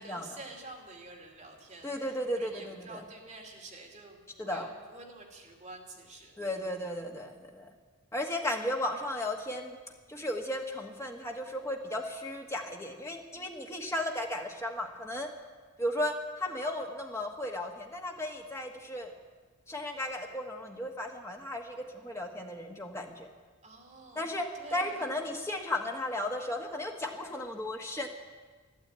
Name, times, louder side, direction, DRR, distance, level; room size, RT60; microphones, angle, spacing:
voice 1, 0.0-6.5 23.6-24.2 24.5-25.1, right 2 dB, 30° right, -1 dB, 2.7 m, -48 dB
voice 2, 1.8-3.0 4.4-4.7 6.4-7.7 8.1-9.8 10.1-15.3 15.8-19.1 19.7-23.3 24.1-28.1, left 1 dB, 15° left, 1 dB, 1.4 m, -35 dB
12.5 x 12.0 x 8.8 m, 1.4 s
head